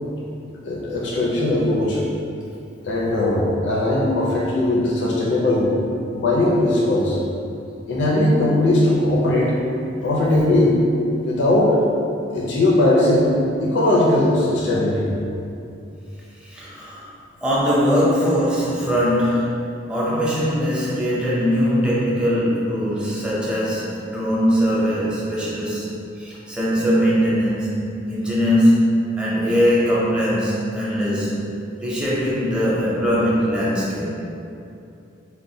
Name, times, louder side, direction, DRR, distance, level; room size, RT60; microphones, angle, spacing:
voice 1, 0.7-2.0 2.8-5.7 6.1-7.2 7.9-9.6 10.0-10.8 11.2-11.8 12.3-13.3 13.6-15.1, left 1 dB, 65° left, -5 dB, 0.5 m, -19 dB
voice 2, 16.4-17.1 17.4-19.6 19.9-25.9 26.2-27.8 28.1-31.4 31.8-34.1, equal, 5° right, -7 dB, 0.5 m, -21 dB
4.1 x 2.1 x 2.6 m, 2.6 s
head